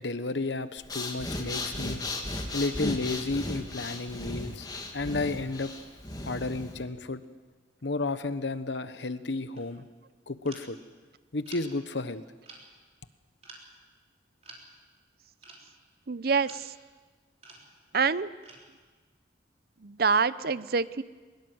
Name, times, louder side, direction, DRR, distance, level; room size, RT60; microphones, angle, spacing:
voice 1, 0.0-2.0 2.5-4.7 4.9-5.7 6.3-7.2 7.8-9.9 10.3-10.8 11.3-12.2, left 3 dB, 75° left, 12 dB, 1.1 m, -32 dB
Breathing, 0.8-6.8, left 2 dB, 20° left, 2.4 m, -36 dB
sound 1, 9.5-9.8 10.4-10.7 11.5-11.7 12.4-12.6 13.4-13.6 14.4-14.6 15.4-15.7 16.4-16.6 17.4-17.9 18.4-18.7, right 3 dB, 35° right, 4.2 m, -49 dB
voice 2, 16.1-16.5 17.9-18.3 19.8-21.0, right 5 dB, 55° right, 16 dB, 0.7 m, -25 dB
22.0 x 21.5 x 7.9 m, 1.4 s
head